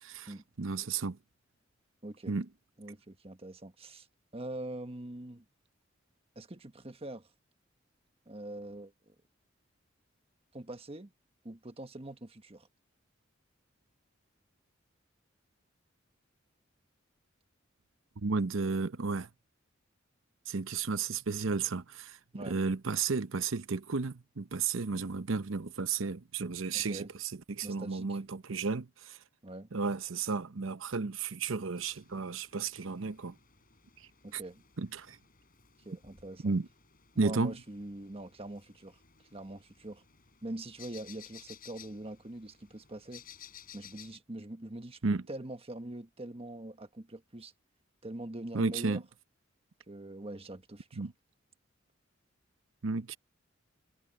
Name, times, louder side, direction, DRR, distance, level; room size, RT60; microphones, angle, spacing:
voice 1, 0.0-1.2 2.3-2.5 18.2-19.3 20.5-22.2 22.5-29.2 29.7-33.3 34.3-34.4 34.8-35.2 36.4-36.7 37.2-37.5 45.0-45.2 48.5-49.0 51.0-51.1 52.8-53.2, right 4 dB, 80° right, 0.8 m, -33 dB
voice 2, 2.0-2.3 2.8-4.1 4.3-5.4 6.3-7.3 8.3-8.9 10.5-11.1 11.4-12.7 22.3-22.6 26.7-27.1 27.6-28.2 29.4-29.7 34.2-34.6 35.8-36.6 37.1-39.0 39.3-40.0 40.4-43.2 43.7-45.0 45.3-47.5 48.0-49.0 49.9-51.1, right 1 dB, 30° right, 1.4 m, -43 dB
sound 1, 31.8-44.2, left 9 dB, 50° left, 4.3 m, -56 dB
head